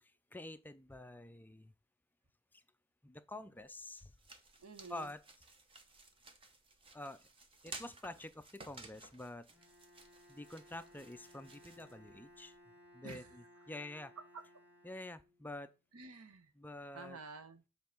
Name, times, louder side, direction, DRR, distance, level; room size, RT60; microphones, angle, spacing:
voice 1, 0.0-1.7 2.5-2.6 3.0-4.1 4.9-5.2 6.9-7.3 7.6-9.5 10.3-12.6 12.9-13.2 13.7-14.1 14.8-15.7 16.6-17.2, left 1 dB, 10° left, 0.4 m, -48 dB
sound 1, 3.6-12.6, right 3 dB, 25° right, 1.0 m, -56 dB
voice 2, 4.6-5.1 13.0-13.4 14.2-14.4 15.9-16.5 16.9-17.6, right 4 dB, 85° right, 1.0 m, -50 dB
Bowed string instrument, 9.5-15.6, left 1 dB, 10° right, 1.5 m, -62 dB
7.4 x 3.9 x 5.9 m
head